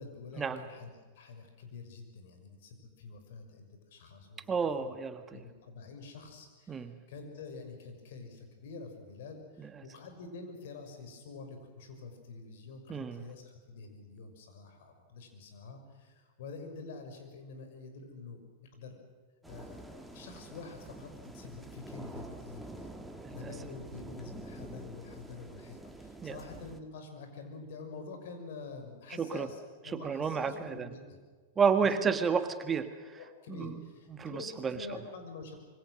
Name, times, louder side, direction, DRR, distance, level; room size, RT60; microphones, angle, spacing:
voice 1, 0.0-4.4 4.8-4.9 5.3-18.4 18.7-19.0 19.5-21.1 21.3-23.0 23.3-31.2 31.9-32.0 33.2-35.6, left 4 dB, 65° left, 5 dB, 6.0 m, -47 dB
voice 2, 4.5-5.4 6.7-7.0 9.6-9.8 12.9-13.2 23.2-23.5 26.2-26.4 29.2-29.5 29.9-30.9 31.6-33.2 33.5-33.8 34.1-35.0, right 6 dB, 20° right, 9 dB, 1.5 m, -31 dB
sound 1, 19.4-26.8, right 2 dB, 5° right, 2.4 m, -47 dB
26.0 x 24.0 x 6.5 m, 1.5 s
hypercardioid pair, 100°, 0 cm